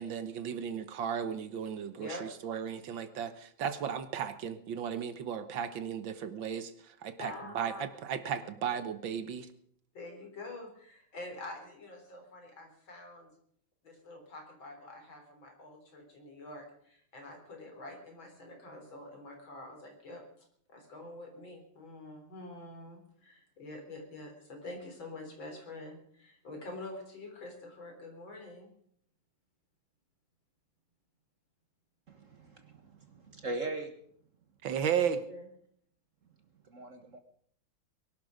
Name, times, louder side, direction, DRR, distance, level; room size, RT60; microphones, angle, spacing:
voice 1, 0.0-9.5 34.6-35.3, right 8 dB, 70° right, 11 dB, 1.7 m, -35 dB
voice 2, 1.9-2.2 7.2-7.8 9.9-13.3 13.8-20.2 20.7-28.7 35.3-35.5, left 2 dB, 70° left, 2 dB, 4.6 m, -46 dB
voice 3, 32.1-33.9 36.6-37.2, right 2 dB, 45° right, 6 dB, 1.4 m, -40 dB
22.5 x 12.0 x 5.1 m, 0.63 s
omnidirectional pair, 2.2 m